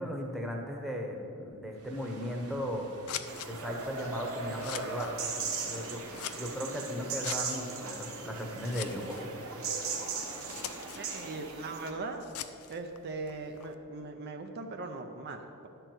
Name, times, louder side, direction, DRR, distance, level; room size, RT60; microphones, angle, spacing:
voice 1, 0.0-3.0 3.5-5.2 5.7-6.0 6.3-9.3, equal, ahead, 0 dB, 1.1 m, -36 dB
sound 1, 1.7-11.7, right 2 dB, 85° right, 1.9 m, -51 dB
Scissors, 2.3-13.8, left 10 dB, 80° left, 0.5 m, -46 dB
sound 2, 3.3-11.9, right 4 dB, 65° right, 1.2 m, -38 dB
voice 2, 10.9-12.3 12.7-15.7, right 3 dB, 50° right, 4 dB, 0.6 m, -40 dB
11.0 x 4.5 x 7.9 m, 2.7 s
head